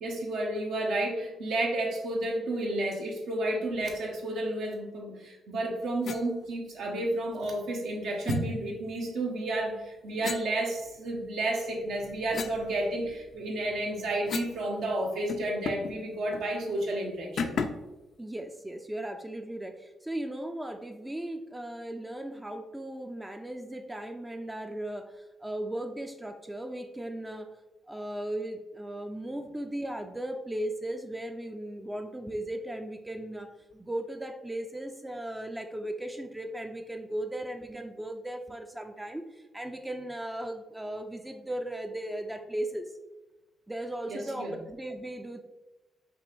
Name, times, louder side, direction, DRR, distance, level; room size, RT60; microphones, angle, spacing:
voice 1, 0.0-17.5 44.1-44.5, right 1 dB, 75° right, 0 dB, 0.9 m, -31 dB
sound 1, 6.0-6.3 8.2-8.4 10.2-11.2 11.7-14.6 14.9-15.0 15.3-16.0 16.3-16.5 17.4-17.9, left 5 dB, 65° left, 0.3 m, -36 dB
voice 2, 18.2-27.5 27.9-42.9 43.7-45.4, right 1 dB, 10° right, 5 dB, 0.3 m, -37 dB
5.2 x 2.5 x 3.1 m, 1.1 s
cardioid pair, 75°, 0 cm